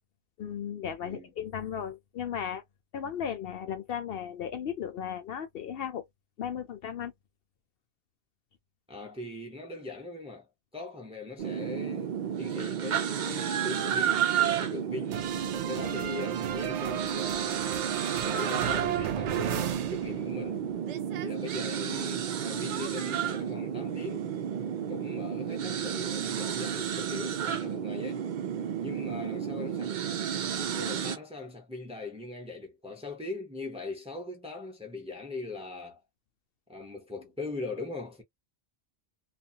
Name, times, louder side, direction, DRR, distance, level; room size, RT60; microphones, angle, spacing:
voice 1, 0.4-2.6 2.9-6.1 6.4-7.1, left 8 dB, 65° left, 0.7 m, -35 dB
voice 2, 8.9-10.5 10.7-15.2 15.6-17.7 18.1-20.6 21.2-24.3 24.9-28.3 28.8-30.0 30.6-36.0 36.7-38.2, left 3 dB, 5° right, 0.5 m, -40 dB
sound 1, 11.4-31.2, right 8 dB, 55° right, 0.5 m, -32 dB
sound 2, 15.1-20.6 20.8-23.2, right 10 dB, 85° right, 0.9 m, -35 dB
2.5 x 2.2 x 2.7 m
omnidirectional pair, 1.2 m